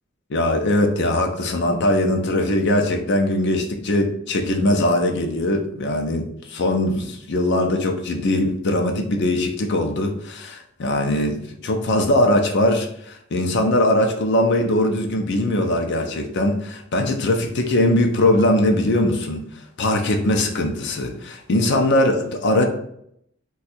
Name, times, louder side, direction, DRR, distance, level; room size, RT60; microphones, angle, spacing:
voice 1, 0.3-19.5 19.8-22.6, left 1 dB, 60° left, 4 dB, 0.5 m, -21 dB
2.6 x 2.3 x 4.1 m, 0.71 s
head